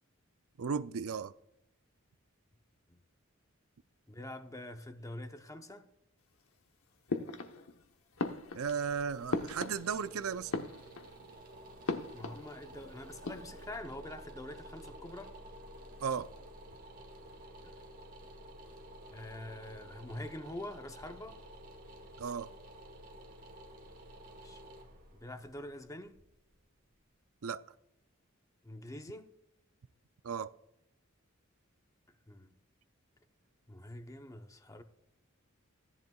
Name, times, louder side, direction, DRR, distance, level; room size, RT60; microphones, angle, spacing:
voice 1, 0.6-1.3 8.5-10.7 16.0-16.3 22.2-22.5 27.4-27.6 30.2-30.5, right 6 dB, 85° right, 0.5 m, -35 dB
voice 2, 4.1-5.8 12.1-15.3 17.6-17.7 19.1-21.4 24.4-24.6 25.1-26.2 28.6-29.3 32.3-32.5 33.7-34.8, left 1 dB, 15° left, 0.8 m, -45 dB
sound 1, 7.1-7.8 8.2-10.1 10.4-11.3 11.9-12.8 13.1-13.7, left 3 dB, 80° left, 1.0 m, -38 dB
sound 2, 8.4-27.2, right 1 dB, 40° right, 1.5 m, -52 dB
16.0 x 11.0 x 2.3 m
head